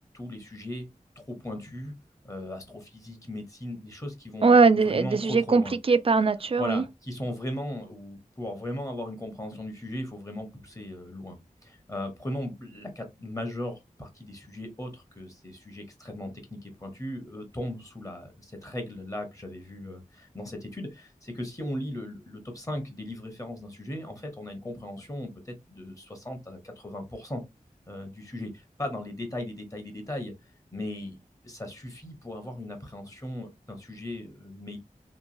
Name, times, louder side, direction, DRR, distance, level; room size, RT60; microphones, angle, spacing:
voice 1, 0.1-0.9 1.2-1.9 2.2-4.5 4.8-5.8 6.6-27.4 27.9-30.3 30.7-31.2 31.4-34.8, left 1 dB, 20° left, 0.8 m, -37 dB
voice 2, 4.4-5.6 5.9-6.8, right 4 dB, 40° right, 0.3 m, -20 dB
2.9 x 2.2 x 2.6 m
wide cardioid pair, 70°, 14 cm